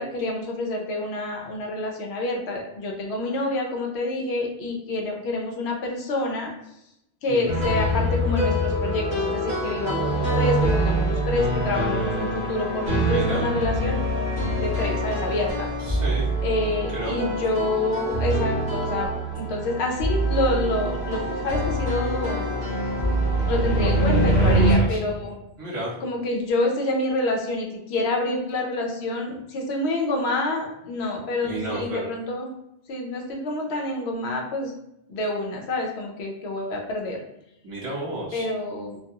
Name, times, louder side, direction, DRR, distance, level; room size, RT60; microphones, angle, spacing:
voice 1, 0.0-6.5 7.2-14.0 14.6-15.7 16.4-19.1 19.3-22.5 23.5-25.4 26.0-32.5 32.9-34.7 35.1-37.2 38.3-39.0, left 2 dB, 80° left, 1 dB, 0.9 m, -27 dB
sound 1, 7.5-24.7, right 1 dB, 5° right, 1.1 m, -24 dB
voice 2, 13.1-13.5 15.8-16.3 16.9-17.1 23.7-23.9 24.3-25.0 25.6-25.9 31.4-32.1 37.6-38.5, right 1 dB, 30° right, -8 dB, 0.9 m, -32 dB
2.3 x 2.3 x 2.7 m, 0.81 s
omnidirectional pair, 1.1 m